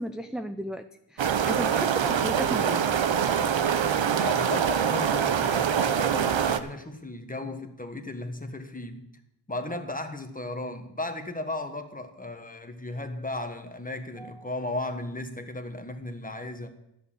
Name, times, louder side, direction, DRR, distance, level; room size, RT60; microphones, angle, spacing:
voice 1, 0.0-2.9 14.2-14.4, right 1 dB, ahead, 8 dB, 0.4 m, -35 dB
sound 1, 1.2-6.6, right 8 dB, 70° right, 0.8 m, -24 dB
voice 2, 4.1-9.0 9.5-16.7, left 2 dB, 20° left, 7 dB, 1.4 m, -35 dB
11.5 x 6.7 x 8.6 m, 0.83 s
wide cardioid pair, 70°, 46 cm